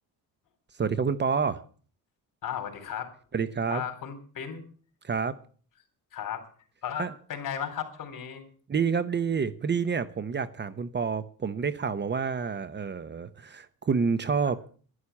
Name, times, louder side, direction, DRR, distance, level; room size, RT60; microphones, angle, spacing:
voice 1, 0.8-1.6 3.3-3.8 5.0-5.4 7.0-7.1 8.7-14.6, right 5 dB, 30° right, 0.9 m, -28 dB
voice 2, 2.4-3.1 3.7-4.6 6.1-6.5 6.8-8.4, left 8 dB, 60° left, 3.8 m, -35 dB
11.5 x 11.5 x 7.2 m
cardioid pair, 115°, 36 cm